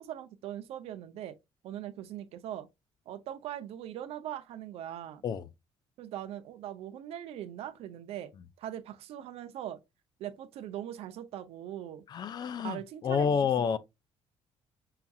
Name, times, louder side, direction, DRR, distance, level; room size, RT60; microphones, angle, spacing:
voice 1, 0.0-1.4 1.6-2.7 3.1-5.2 6.0-8.3 8.6-9.8 10.2-12.0 12.6-13.4 13.7-13.8, right 11 dB, 70° right, 0.5 m, -41 dB
voice 2, 12.1-13.8, left 7 dB, 40° left, 0.3 m, -29 dB
5.6 x 2.3 x 2.6 m
cardioid pair, 140°, 10 cm